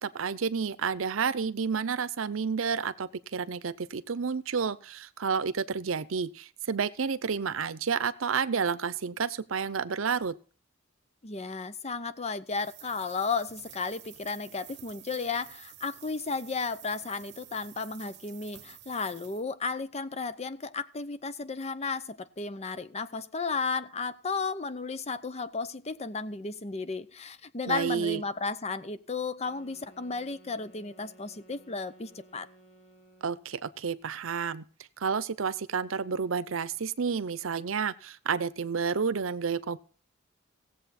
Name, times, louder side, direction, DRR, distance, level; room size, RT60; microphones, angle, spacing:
voice 1, 0.0-10.4 27.7-28.2 33.2-34.6 35.0-39.8, right 6 dB, 90° right, 0.7 m, -30 dB
voice 2, 11.2-32.5, left 4 dB, 30° left, 0.7 m, -34 dB
sound 1, 12.5-19.4, right 13 dB, 60° right, 1.1 m, -50 dB
sound 2, 29.4-33.6, right 1 dB, 65° left, 2.4 m, -57 dB
17.0 x 7.7 x 4.2 m
head